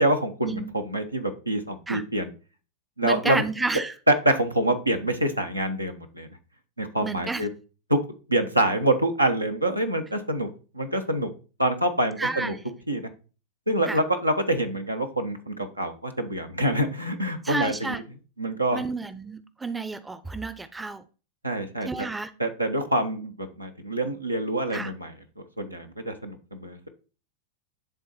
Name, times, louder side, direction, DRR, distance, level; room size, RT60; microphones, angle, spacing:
voice 1, 0.0-2.3 3.0-3.4 4.1-6.3 6.8-7.5 7.9-8.0 8.3-10.5 10.7-11.3 11.6-12.5 12.9-13.1 13.7-18.0 18.4-18.8 21.4-22.1 22.4-25.1 25.6-26.9, right 1 dB, 85° right, 6 dB, 1.0 m, -26 dB
voice 2, 3.0-3.9 7.0-7.4 12.2-12.6 13.9-14.0 17.4-18.0 18.7-21.0 21.8-22.3 24.7-24.9, right 3 dB, 10° right, 14 dB, 0.6 m, -30 dB
10.5 x 3.7 x 4.3 m, 0.35 s
figure-of-eight pair, 90°, 0 cm